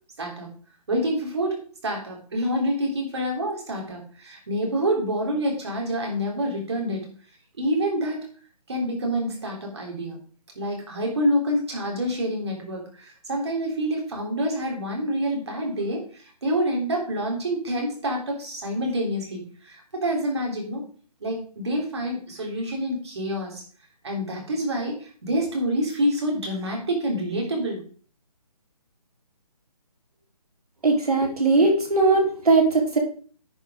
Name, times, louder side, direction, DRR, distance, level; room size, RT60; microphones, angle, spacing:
voice 1, 0.2-0.5 0.9-7.1 7.6-8.3 8.7-10.2 10.5-20.8 21.2-23.6 24.0-27.8, equal, 45° right, -1 dB, 3.2 m, -27 dB
voice 2, 30.8-33.0, right 3 dB, 70° right, 1 dB, 3.5 m, -19 dB
9.9 x 5.4 x 5.0 m, 0.42 s
hypercardioid pair, 180°, 20 cm